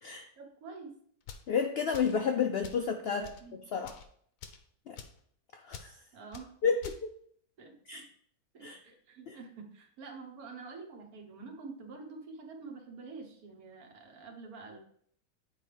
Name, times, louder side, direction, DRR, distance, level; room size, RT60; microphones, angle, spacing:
voice 1, 0.4-0.9 3.0-3.6 6.1-6.6 7.6-8.0 8.5-14.8, right 4 dB, 70° right, 2 dB, 1.5 m, -47 dB
sound 1, 1.2-1.5 1.9-2.2 2.6-2.9 3.2-3.4 3.8-4.1 4.4-4.6 5.0-5.2 5.7-5.9 6.3-6.5 6.8-7.0, left 6 dB, 70° left, 1.0 m, -47 dB
voice 2, 1.5-3.3 3.7-4.0 4.9-5.0 5.5-6.0 6.6-7.1 7.9-8.0 8.6-8.8 9.3-9.4, left 6 dB, 90° left, 5 dB, 0.5 m, -31 dB
9.0 x 4.6 x 3.3 m, 0.63 s
omnidirectional pair, 1.6 m